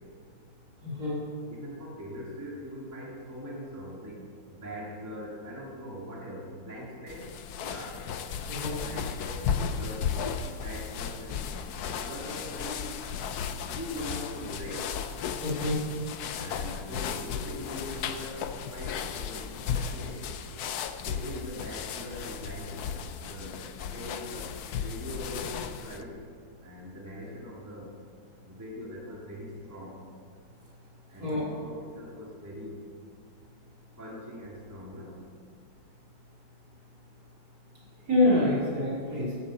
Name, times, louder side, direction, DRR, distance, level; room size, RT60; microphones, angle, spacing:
voice 1, 0.8-1.2 8.5-8.8 15.4-15.8 31.2-31.4 38.1-39.3, left 1 dB, 55° right, -7 dB, 4.5 m, -26 dB
voice 2, 1.5-8.1 8.8-11.5 11.8-13.0 13.6-15.0 16.4-20.4 21.1-24.6 24.8-26.2 26.6-28.0 28.4-30.1 31.1-32.8 34.0-35.3, equal, 10° right, -4 dB, 2.1 m, -42 dB
sound 1, 7.1-26.0, left 7 dB, 65° left, 1.1 m, -35 dB
10.5 x 9.4 x 7.7 m, 2.1 s
omnidirectional pair, 2.0 m